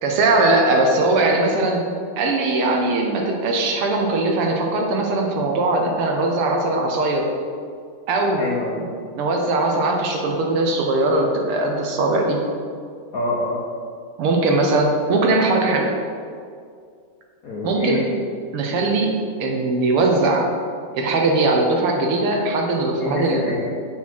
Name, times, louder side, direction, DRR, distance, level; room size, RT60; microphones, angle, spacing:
voice 1, 0.0-1.8 2.2-7.3 8.1-8.4 9.2-12.4 14.2-15.9 17.6-18.0 18.5-19.1 19.4-20.5 20.9-23.5, right 2 dB, 80° right, 1 dB, 1.7 m, -20 dB
voice 2, 8.4-8.9 13.1-13.6 17.4-18.0 23.0-23.6, left 2 dB, 60° left, -4 dB, 0.9 m, -25 dB
7.1 x 4.7 x 4.4 m, 2.2 s
omnidirectional pair, 2.4 m